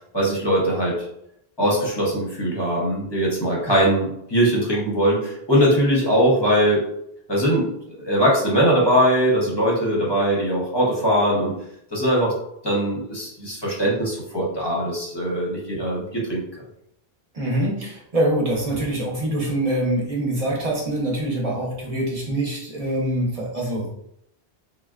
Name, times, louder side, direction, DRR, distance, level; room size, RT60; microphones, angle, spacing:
voice 1, 0.1-1.1 1.6-6.9 7.3-11.5 11.9-12.3 12.6-16.4, equal, 25° left, -4 dB, 0.8 m, -21 dB
voice 2, 17.3-23.9, right 1 dB, 35° right, -4 dB, 0.9 m, -24 dB
3.5 x 2.1 x 2.4 m, 0.77 s
omnidirectional pair, 1.1 m